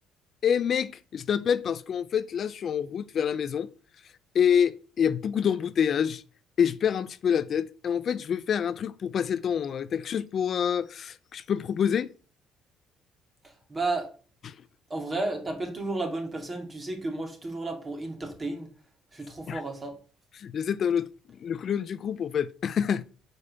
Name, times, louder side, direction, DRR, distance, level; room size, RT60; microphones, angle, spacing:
voice 1, 0.4-3.7 4.3-6.2 6.6-12.1 14.4-14.5 19.5-19.6 20.4-21.1 21.4-23.0, left 8 dB, 45° left, 0.5 m, -27 dB
voice 2, 13.4-14.1 14.9-18.7 19.1-20.0, right 2 dB, 25° right, 2.7 m, -32 dB
8.3 x 5.3 x 6.8 m
cardioid pair, 130°, 0 cm